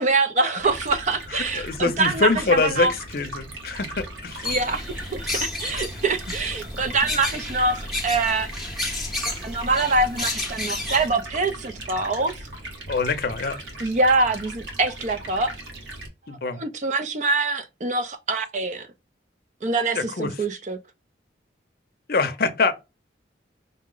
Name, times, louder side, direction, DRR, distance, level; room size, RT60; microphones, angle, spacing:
voice 1, 0.0-2.9 4.4-8.5 9.3-12.3 13.8-15.5 16.5-18.9 19.6-20.8, right 3 dB, 40° right, 0.5 m, -24 dB
Stream, 0.6-16.1, right 1 dB, 85° right, 1.3 m, -38 dB
voice 2, 1.3-4.5 12.9-13.6 16.3-16.6 19.9-20.3 22.1-22.7, left 4 dB, 55° left, 0.6 m, -24 dB
sound 1, 4.4-11.1, left 2 dB, ahead, 0.8 m, -31 dB
5.3 x 2.1 x 3.7 m
head